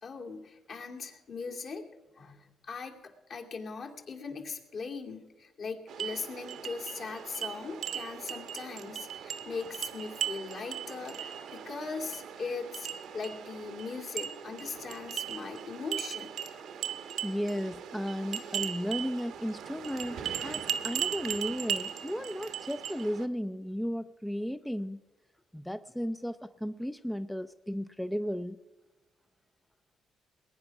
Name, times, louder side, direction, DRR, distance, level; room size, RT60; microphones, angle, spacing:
voice 1, 0.0-1.9 2.2-12.9 13.1-16.3, left 4 dB, 55° left, 1 dB, 2.5 m, -40 dB
sound 1, 5.9-23.3, right 9 dB, 75° right, 1.1 m, -38 dB
voice 2, 17.2-25.0 25.5-28.6, equal, 5° left, 11 dB, 0.5 m, -34 dB
20.5 x 9.5 x 6.0 m, 1.2 s
cardioid pair, 90°, 0 cm